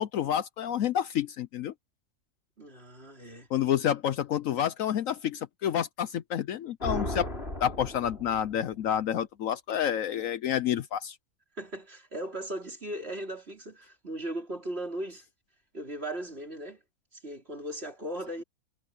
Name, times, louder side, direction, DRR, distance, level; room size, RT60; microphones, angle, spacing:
voice 1, 0.0-1.7 3.5-7.3 7.6-11.2, left 10 dB, 65° left, 1.0 m, -29 dB
voice 2, 2.6-3.5 11.5-15.2 15.7-16.8 17.1-18.4, right 1 dB, 40° right, 4.8 m, -37 dB
sound 1, 6.8-8.8, left 1 dB, 40° left, 6.3 m, -36 dB
omnidirectional pair, 1.6 m